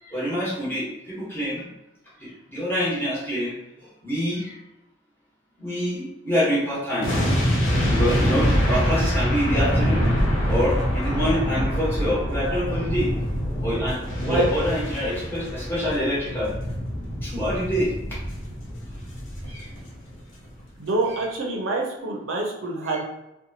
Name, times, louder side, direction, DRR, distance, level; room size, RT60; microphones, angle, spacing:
voice 1, 0.0-1.7 2.2-4.6 5.6-7.5 7.9-10.1 10.5-13.1 13.6-16.5 17.2-17.9 19.4-19.7 21.1-21.2, equal, 10° left, -8 dB, 1.0 m, -26 dB
sound 1, 7.0-20.2 20.4-20.6, equal, 70° left, 0.6 m, -25 dB
voice 2, 20.8-23.0, right 3 dB, 85° right, 0 dB, 0.6 m, -26 dB
2.8 x 2.2 x 2.7 m, 0.93 s
head